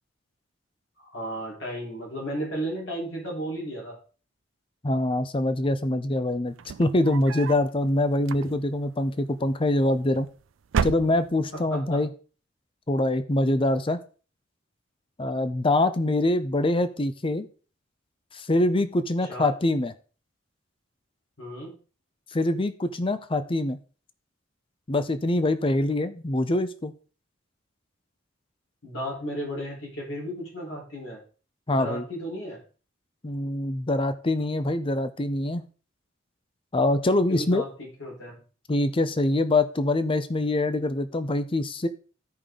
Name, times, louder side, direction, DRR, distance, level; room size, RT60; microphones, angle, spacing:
voice 1, 1.0-4.0 11.5-12.0 19.3-19.5 21.4-21.7 28.8-31.2 31.7-32.6 37.3-38.4, equal, 70° left, -3 dB, 4.0 m, -34 dB
voice 2, 4.8-10.3 10.8-12.1 12.9-14.0 15.2-17.5 18.3-19.9 22.3-23.8 24.9-26.9 31.7-32.0 33.2-35.6 36.7-37.6 38.7-41.9, left 1 dB, 25° left, 11 dB, 0.6 m, -24 dB
sound 1, 6.5-7.7 8.2-8.9 9.8-10.3 10.6-11.6, right 6 dB, 75° right, 0.4 m, -31 dB
13.0 x 5.2 x 3.7 m, 0.38 s
head